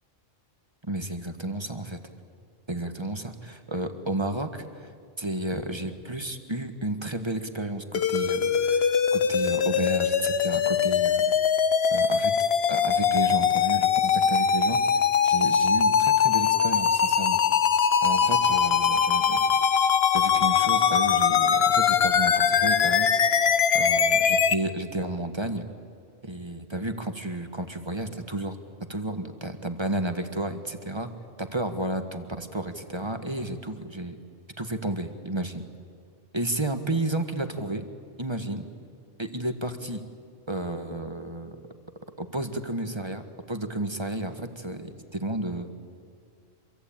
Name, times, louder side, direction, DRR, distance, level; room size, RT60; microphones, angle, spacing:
voice 1, 0.8-2.0 2.7-4.9 5.2-11.3 11.9-12.3 12.7-17.4 18.0-19.4 20.1-25.6 26.2-28.6 28.9-31.1 31.4-34.2 34.6-35.6 36.3-37.9 38.2-38.6 39.2-40.0 40.5-41.6 42.2-45.7, right 1 dB, 20° right, 7 dB, 1.5 m, -32 dB
sound 1, 7.9-24.5, left 7 dB, 55° left, 1.1 m, -22 dB
26.5 x 23.5 x 8.9 m, 2.3 s
omnidirectional pair, 1.3 m